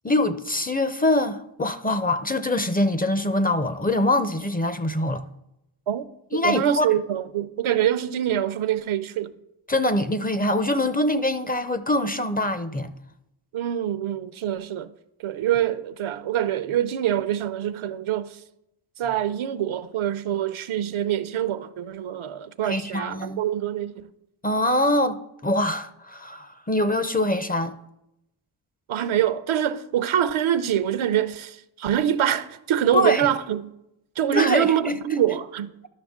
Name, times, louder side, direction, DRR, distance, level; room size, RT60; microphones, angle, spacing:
voice 1, 0.0-5.2 6.3-6.9 9.7-12.9 22.6-23.4 24.4-27.8 32.9-33.3 34.3-34.9, left 1 dB, 20° left, 0.5 m, -24 dB
voice 2, 6.4-9.3 13.5-14.9 15.2-18.4 19.0-24.1 28.9-33.7 34.2-35.7, right 10 dB, 75° right, 0.6 m, -25 dB
12.0 x 5.8 x 3.6 m
cardioid pair, 55°, 49 cm